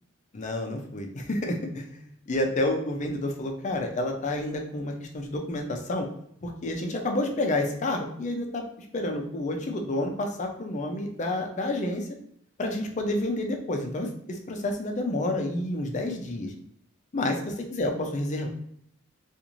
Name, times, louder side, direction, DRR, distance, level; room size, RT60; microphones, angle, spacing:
voice 1, 0.3-2.0 2.3-6.1 6.4-8.6 8.9-12.1 12.6-16.5 17.1-18.5, left 1 dB, 35° left, 3 dB, 0.4 m, -29 dB
2.5 x 2.4 x 2.9 m, 0.69 s
head